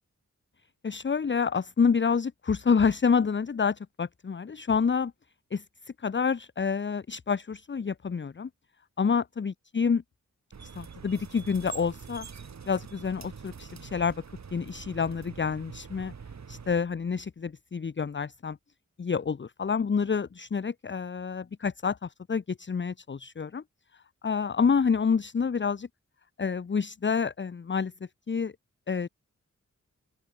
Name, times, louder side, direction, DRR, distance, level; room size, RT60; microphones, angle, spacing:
voice 1, 0.8-5.1 5.5-5.6 6.0-8.5 9.0-10.0 10.6-12.3 12.6-14.2 14.5-16.1 16.5-18.6 19.0-23.6 24.2-25.9 26.4-27.9 28.3-28.5 28.9-29.1, left 5 dB, 40° left, 0.9 m, -28 dB
sound 1, 10.5-16.7, right 6 dB, 65° right, 2.8 m, -45 dB
open air
wide cardioid pair, 135°, 30 cm